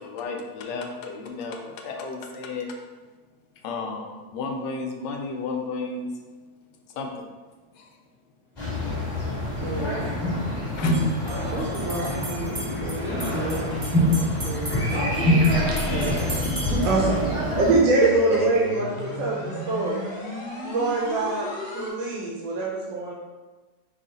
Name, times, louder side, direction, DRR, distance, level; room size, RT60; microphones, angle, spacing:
voice 1, 0.0-2.7 3.6-6.1 6.9-7.3 7.7-7.9 10.7-11.0, left 4 dB, 75° left, 2 dB, 1.2 m, -33 dB
sound 1, 8.6-17.7, left 1 dB, 25° left, 1.4 m, -25 dB
voice 2, 9.6-10.2 12.4-13.1 15.5-15.9 16.8-20.0 20.6-21.5 21.7-23.1, right 3 dB, 90° right, -3 dB, 1.4 m, -25 dB
sound 2, 10.8-17.0, right 2 dB, 25° right, 0.7 m, -38 dB
voice 3, 11.4-16.4 16.7-17.1 17.5-17.8 18.3-18.5, right 1 dB, 65° right, -3 dB, 0.9 m, -32 dB
sound 3, 15.5-21.9, equal, 40° left, 0.9 m, -34 dB
5.5 x 2.4 x 3.9 m, 1.3 s
omnidirectional pair, 2.0 m